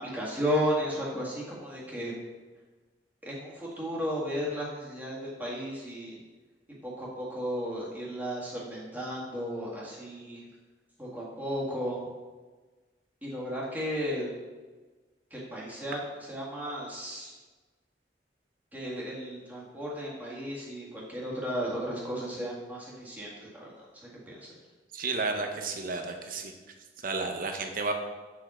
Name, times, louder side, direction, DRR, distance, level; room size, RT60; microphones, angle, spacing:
voice 1, 0.0-2.1 3.2-6.2 6.8-10.4 11.0-12.1 13.2-14.3 15.3-16.0 16.3-17.3 18.7-23.7 23.9-24.5, equal, 10° right, -6 dB, 1.9 m, -34 dB
voice 2, 24.9-26.5 27.0-27.9, right 3 dB, 50° right, 4 dB, 0.8 m, -32 dB
8.5 x 4.8 x 4.3 m, 1.3 s
head